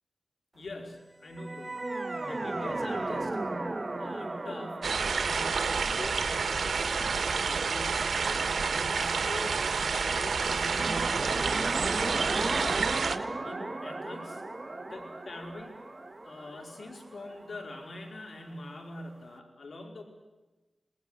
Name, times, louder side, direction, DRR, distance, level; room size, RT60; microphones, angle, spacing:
voice 1, 0.5-1.8 2.2-3.4 4.0-11.6 12.4-12.9 13.4-14.4 14.8-15.8 16.2-20.0, left 2 dB, 75° left, 3 dB, 5.0 m, -44 dB
sound 1, 1.2-8.5 10.4-18.2, right 2 dB, 40° right, 2.8 m, -36 dB
sound 2, 4.8-13.2, right 5 dB, 90° right, 1.7 m, -29 dB
27.5 x 20.0 x 8.3 m, 1.1 s
cardioid pair, 45°, 0 cm